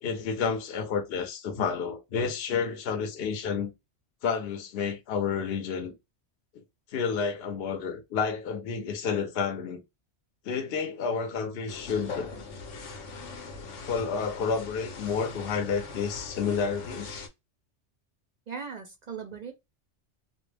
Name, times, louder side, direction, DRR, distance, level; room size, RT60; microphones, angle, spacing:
voice 1, 0.0-3.7 4.2-5.9 6.9-9.8 10.4-12.3 13.9-17.2, left 6 dB, 60° left, 0.8 m, -30 dB
sound 1, 11.7-17.3, left 4 dB, 85° left, 1.0 m, -41 dB
voice 2, 18.5-19.5, right 6 dB, 60° right, 0.4 m, -38 dB
2.4 x 2.1 x 3.2 m
omnidirectional pair, 1.2 m